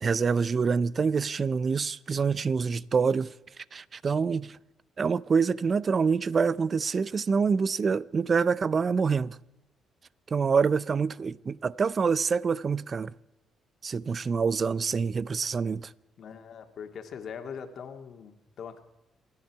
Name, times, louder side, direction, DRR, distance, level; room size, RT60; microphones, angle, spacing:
voice 1, 0.0-3.3 3.7-4.6 5.0-9.4 10.3-13.1 13.8-15.9, right 5 dB, 40° right, 0.5 m, -26 dB
voice 2, 16.2-18.8, left 7 dB, 60° left, 2.0 m, -41 dB
28.5 x 10.5 x 4.7 m
cardioid pair, 90°, 0 cm